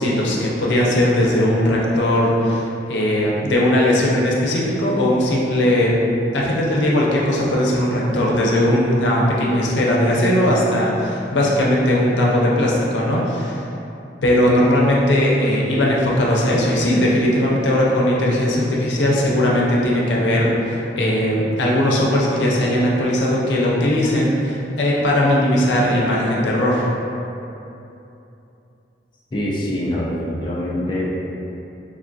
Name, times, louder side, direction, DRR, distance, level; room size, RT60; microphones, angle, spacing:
voice 1, 0.0-5.9 6.3-13.6 14.2-26.9, left 1 dB, 90° left, -4 dB, 0.5 m, -18 dB
voice 2, 29.3-31.2, left 1 dB, 25° left, -5 dB, 0.3 m, -24 dB
3.5 x 2.5 x 2.3 m, 2.8 s
head